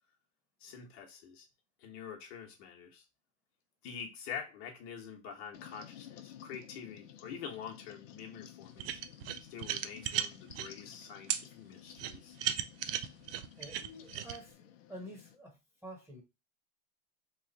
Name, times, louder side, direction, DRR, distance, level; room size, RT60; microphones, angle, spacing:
voice 1, 0.6-1.5 1.8-3.0 3.8-9.0 9.5-12.4, left 7 dB, 55° left, 1.1 m, -46 dB
sound 1, 5.5-15.4, left 10 dB, 90° left, 0.6 m, -54 dB
sound 2, 8.8-10.7 11.3-11.4 12.0-14.4, right 11 dB, 50° right, 0.4 m, -35 dB
voice 2, 13.6-16.2, equal, 5° right, 1.1 m, -49 dB
3.2 x 2.4 x 3.8 m
supercardioid pair, 135°, 37 cm